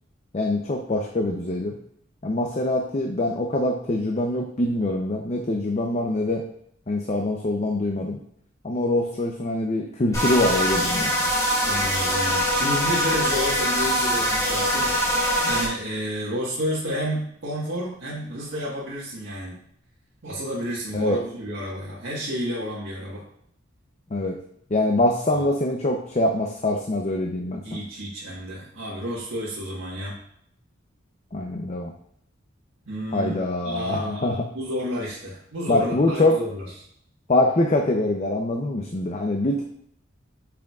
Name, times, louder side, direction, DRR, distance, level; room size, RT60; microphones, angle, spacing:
voice 1, 0.3-1.7 2.2-6.4 6.9-8.2 8.6-11.1 20.9-21.2 24.1-24.4 24.7-27.8 31.3-31.9 33.1-34.3 35.7-36.4 37.3-39.6, left 1 dB, 35° left, 2 dB, 0.6 m, -24 dB
sound 1, 10.1-15.7, equal, 15° left, 2.7 m, -23 dB
voice 2, 11.6-19.6 20.2-23.2 25.3-25.4 27.6-30.2 32.9-33.4 33.6-36.6, equal, 85° right, -7 dB, 1.5 m, -30 dB
8.6 x 6.0 x 2.4 m, 0.69 s
head